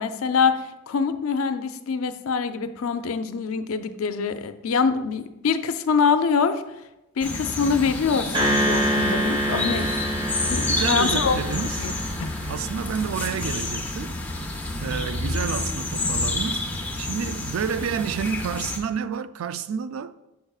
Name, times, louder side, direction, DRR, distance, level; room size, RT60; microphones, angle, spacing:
voice 1, 0.0-6.6 7.2-9.9 10.5-11.4 11.8-11.9 12.2-12.3, left 5 dB, 75° left, 0.4 m, -24 dB
sound 1, 7.2-18.8, left 2 dB, 5° left, 0.7 m, -29 dB
sound 2, 8.3-12.8, equal, 25° right, 1.0 m, -26 dB
voice 2, 10.6-11.9 12.5-14.1 14.8-20.1, right 7 dB, 70° right, 0.3 m, -30 dB
6.6 x 6.5 x 2.3 m
head